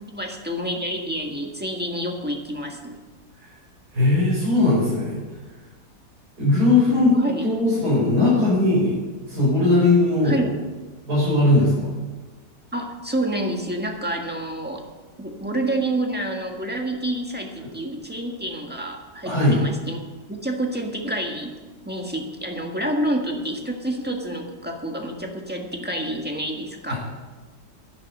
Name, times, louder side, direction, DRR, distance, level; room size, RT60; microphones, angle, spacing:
voice 1, 0.1-3.0 7.1-7.5 10.2-10.5 12.7-14.8 15.2-20.0 20.3-21.5 21.8-26.9, right 1 dB, 5° right, 1 dB, 1.4 m, -28 dB
voice 2, 3.9-5.2 6.4-7.1 7.4-10.3 11.1-11.9 19.3-19.6 26.9-27.0, left 2 dB, 60° right, -9 dB, 5.8 m, -19 dB
11.0 x 10.5 x 6.6 m, 1.3 s
omnidirectional pair, 1.9 m